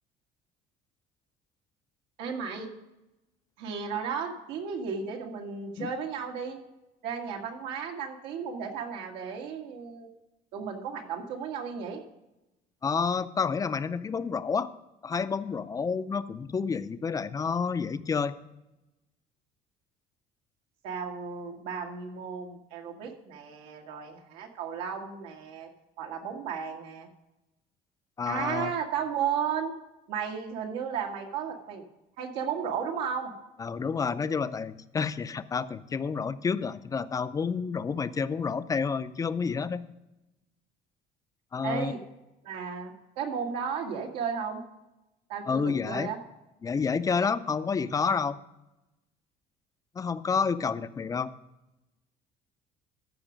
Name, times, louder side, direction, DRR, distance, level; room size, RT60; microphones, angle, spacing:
voice 1, 2.2-2.7 3.6-6.6 7.0-10.1 10.5-12.0 20.8-25.7 26.0-27.1 28.3-29.7 30.1-31.9 32.2-33.4 41.6-42.0 42.4-44.6 45.3-46.2, right 7 dB, 90° right, 1 dB, 1.9 m, -34 dB
voice 2, 12.8-14.7 15.0-18.3 28.2-28.7 33.6-39.9 41.5-41.9 45.5-46.1 46.6-48.4 50.0-51.3, left 5 dB, 20° left, 14 dB, 0.4 m, -29 dB
14.0 x 5.3 x 5.0 m, 0.97 s
cardioid pair, 130°, 17 cm